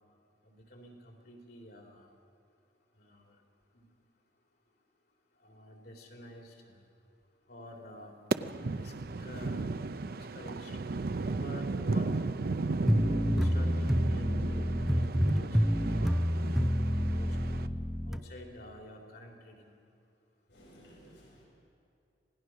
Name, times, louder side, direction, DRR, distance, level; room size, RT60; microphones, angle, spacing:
voice 1, 0.4-2.1 3.0-3.3 3.7-3.9 5.4-6.8 7.5-8.1 8.6-8.9 9.2-9.7 10.1-10.7 11.3-12.1 13.3-16.2 16.8-17.3 18.0-19.7, equal, 60° left, 1 dB, 3.8 m, -49 dB
sound 1, 8.3-17.7, right 3 dB, 55° right, 0.6 m, -35 dB
sound 2, 12.9-18.2, equal, ahead, 0.5 m, -28 dB
voice 2, 20.5-21.4, equal, 75° left, -5 dB, 7.2 m, -56 dB
26.5 x 18.5 x 6.3 m, 2.7 s
head